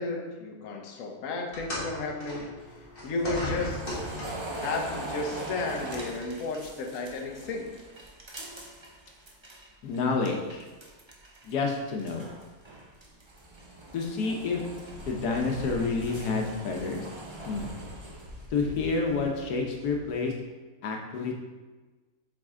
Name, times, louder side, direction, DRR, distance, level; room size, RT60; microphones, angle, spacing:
voice 1, 0.0-2.5 3.0-3.8 4.6-7.8, left 3 dB, 60° left, 2 dB, 1.2 m, -33 dB
sound 1, 1.5-4.6 5.6-5.7 6.6-6.7, equal, 35° left, 1.8 m, -36 dB
sound 2, 2.6-9.7 9.9-11.6 11.9-19.0, right 1 dB, 25° right, 0.6 m, -42 dB
voice 2, 9.8-10.6 11.4-12.3 13.9-14.6 15.1-17.1 17.5-17.7 18.5-20.3 20.8-21.3, left 4 dB, 90° left, 2 dB, 1.4 m, -29 dB
sound 3, 14.8-20.1, left 1 dB, 70° right, 2.1 m, -46 dB
7.6 x 4.2 x 3.6 m, 1.2 s
omnidirectional pair, 1.6 m